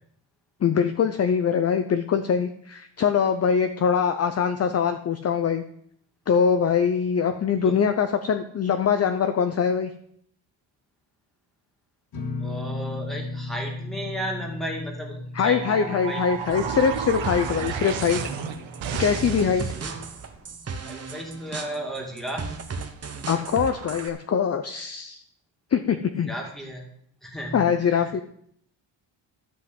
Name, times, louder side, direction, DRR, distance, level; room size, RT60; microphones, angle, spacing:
voice 1, 0.6-5.6 6.3-9.9 15.4-18.2 19.0-19.7 23.3-25.2 25.7-26.3 27.5-28.2, left 7 dB, 35° left, 8 dB, 0.6 m, -23 dB
sound 1, 12.1-19.7, left 2 dB, 55° left, 2.1 m, -37 dB
voice 2, 12.4-16.3 19.6-22.6 26.3-26.8 27.2-28.1, right 1 dB, ahead, 0 dB, 2.3 m, -35 dB
sound 2, 15.5-20.1, right 7 dB, 85° right, 1.4 m, -32 dB
sound 3, 17.2-24.1, right 5 dB, 35° right, 1.1 m, -36 dB
12.5 x 5.6 x 8.0 m, 0.68 s
cardioid pair, 160°, 45 cm